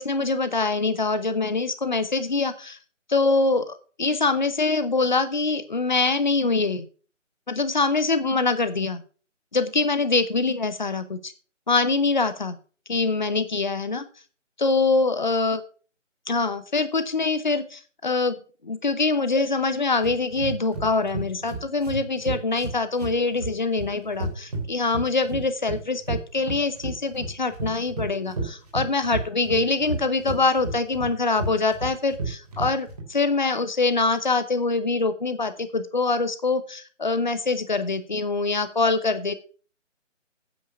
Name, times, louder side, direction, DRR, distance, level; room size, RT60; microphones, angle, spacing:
voice 1, 0.0-2.8 3.1-6.9 7.5-9.0 9.5-11.3 11.7-12.6 12.9-14.1 14.6-15.6 16.3-39.3, left 3 dB, 35° left, 12 dB, 1.0 m, -24 dB
sound 1, 20.0-33.0, right 3 dB, 30° right, 3.3 m, -32 dB
9.4 x 7.8 x 5.9 m, 0.39 s
figure-of-eight pair, 155°, 38 cm